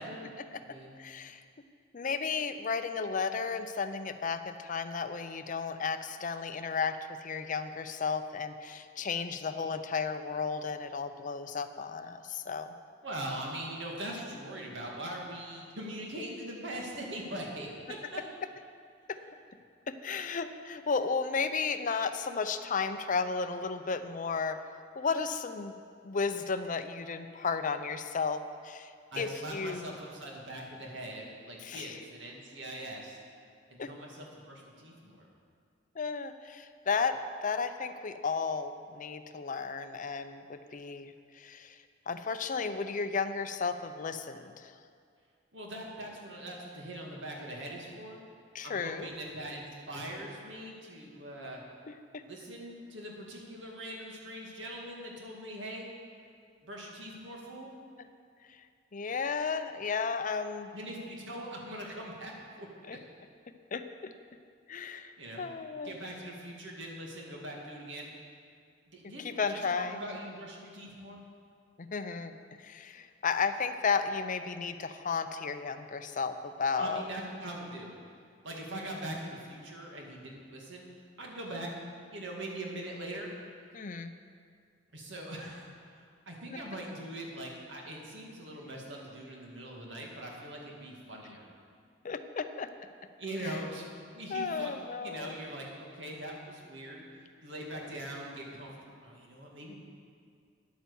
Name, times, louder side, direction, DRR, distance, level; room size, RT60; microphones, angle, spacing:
voice 1, 0.0-0.9 13.0-17.7 18.1-18.2 29.1-33.2 33.7-35.3 45.5-48.2 48.6-51.6 52.2-55.9 56.6-57.7 60.7-62.7 65.2-65.5 65.8-68.1 68.9-71.2 76.8-77.9 78.4-80.9 81.2-81.7 82.1-83.3 84.9-91.5 93.2-94.7 95.0-97.0 97.4-99.8, right 1 dB, 70° right, -1 dB, 2.3 m, -42 dB
voice 2, 1.0-1.4 1.9-12.7 19.1-19.2 19.9-24.6 25.0-25.7 26.0-28.9 29.2-29.9 31.6-32.0 33.8-33.9 36.0-41.8 42.1-44.7 48.5-49.1 51.9-52.2 58.5-58.6 58.9-60.7 62.9-63.0 63.7-64.1 64.7-66.0 69.2-70.0 71.8-77.0 83.7-84.1 92.0-92.7 93.4-93.6 94.3-95.3, left 5 dB, 45° left, 10 dB, 0.5 m, -34 dB
10.5 x 9.0 x 7.0 m, 2.2 s
head